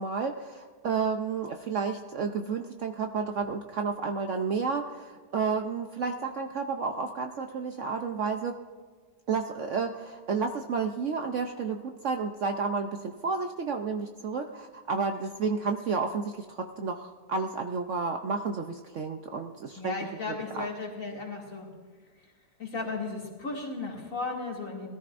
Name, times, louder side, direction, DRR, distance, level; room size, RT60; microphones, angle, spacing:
voice 1, 0.0-8.5 9.3-19.9 20.5-20.7, right 5 dB, 60° right, 4 dB, 0.9 m, -31 dB
voice 2, 19.7-21.7 22.6-24.9, left 3 dB, 50° left, -2 dB, 2.7 m, -35 dB
20.5 x 14.0 x 2.6 m, 1.5 s
omnidirectional pair, 1.8 m